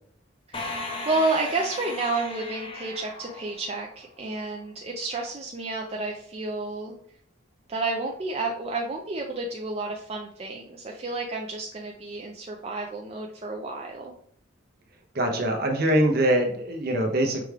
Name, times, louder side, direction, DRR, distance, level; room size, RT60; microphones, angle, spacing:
sound 1, 0.5-4.2, left 2 dB, 25° left, 0.7 m, -37 dB
voice 1, 1.1-6.9 7.7-14.1, right 3 dB, 30° right, 0 dB, 0.4 m, -30 dB
voice 2, 15.1-17.4, right 1 dB, 50° right, 3 dB, 0.8 m, -23 dB
5.9 x 2.4 x 3.3 m, 0.62 s
head